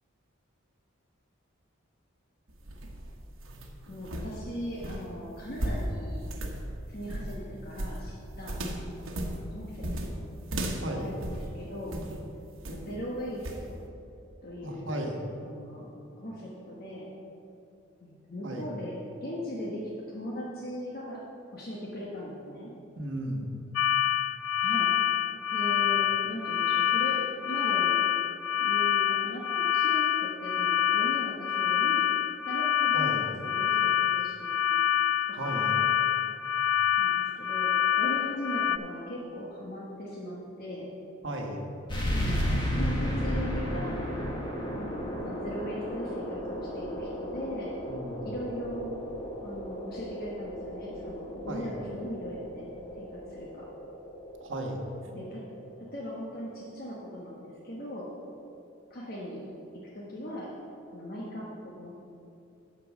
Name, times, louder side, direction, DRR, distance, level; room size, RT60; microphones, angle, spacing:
sound 1, 2.5-12.2 12.6-13.0 13.4-13.7, right 1 dB, 85° right, 1.1 m, -36 dB
voice 1, 3.9-6.4 6.9-9.1 9.5-10.3 10.9-12.1 12.7-13.8 14.4-14.9 15.4-17.1 18.0-21.2 21.5-22.7 24.6-24.9 25.5-28.0 28.6-32.1 32.5-34.8 35.4-35.6 37.0-40.9 42.1-43.9 44.7-47.7 48.2-49.0 49.4-52.7 53.0-53.7 55.1-55.4 55.8-58.1 58.9-59.5 59.9-60.5 60.9-61.9, equal, 50° left, -5 dB, 1.2 m, -39 dB
voice 2, 10.8-11.1 14.6-15.2 18.4-18.7 23.0-23.5 32.9-33.2 35.3-35.8 41.2-41.6 47.8-48.3 51.5-51.8 54.4-54.8, right 1 dB, 65° right, 2 dB, 1.3 m, -35 dB
sound 2, 23.8-38.8, left 10 dB, 80° left, 0.3 m, -26 dB
sound 3, 41.9-57.0, equal, 25° left, 1.5 m, -34 dB
11.0 x 4.7 x 7.1 m, 2.6 s
head